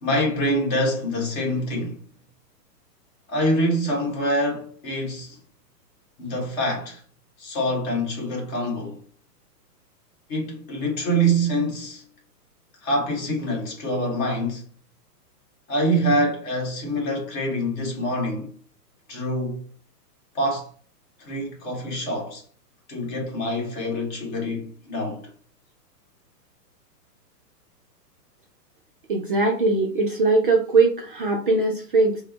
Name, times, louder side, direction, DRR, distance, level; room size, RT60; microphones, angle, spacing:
voice 1, 0.0-2.0 3.3-5.4 6.2-7.0 7.4-9.0 10.3-12.0 12.8-14.7 15.7-18.5 19.1-19.6 20.3-20.7 21.2-22.4 22.9-25.3, equal, 35° left, 1.5 m, -25 dB
voice 2, 29.1-32.2, right 3 dB, 35° right, 0.5 m, -20 dB
4.3 x 2.1 x 3.9 m
hypercardioid pair, 165°, 48 cm